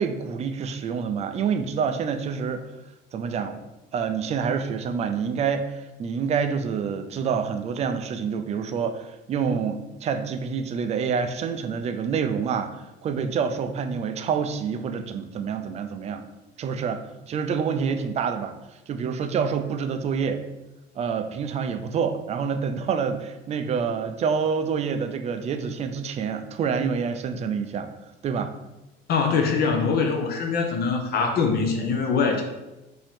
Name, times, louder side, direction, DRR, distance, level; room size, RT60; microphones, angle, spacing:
voice 1, 0.0-2.6 3.1-3.6 3.9-12.8 13.0-16.2 16.6-18.6 18.9-20.4 21.0-27.9 28.2-28.5, right 6 dB, 35° right, 8 dB, 0.4 m, -27 dB
voice 2, 29.1-32.4, left 5 dB, 50° left, 3 dB, 0.6 m, -23 dB
5.3 x 2.7 x 3.5 m, 1.0 s
cardioid pair, 135°, 20 cm